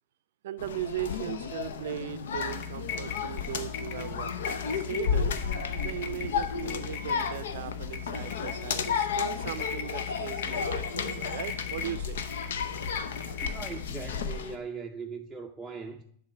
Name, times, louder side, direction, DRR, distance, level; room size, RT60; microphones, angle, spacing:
voice 1, 0.4-4.3 4.9-5.4 5.7-12.2, right 11 dB, 70° right, 0.4 m, -38 dB
sound 1, 0.6-14.6, left 6 dB, 80° left, 0.6 m, -33 dB
sound 2, 2.3-14.2, left 6 dB, 55° left, 1.0 m, -39 dB
voice 2, 13.4-16.0, right 4 dB, 10° right, 0.5 m, -40 dB
7.4 x 3.4 x 5.9 m
hypercardioid pair, 110°, 0 cm